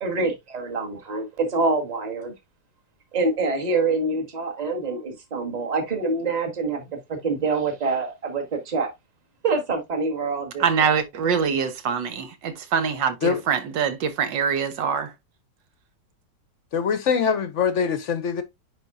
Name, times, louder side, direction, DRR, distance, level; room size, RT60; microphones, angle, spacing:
voice 1, 0.0-2.3 3.1-8.9 9.4-10.9, right 3 dB, 25° right, 1.5 m, -26 dB
voice 2, 10.6-15.1, right 6 dB, 85° right, 1.8 m, -24 dB
voice 3, 16.7-18.4, left 6 dB, 60° left, 0.8 m, -23 dB
10.0 x 4.1 x 2.5 m
omnidirectional pair, 1.9 m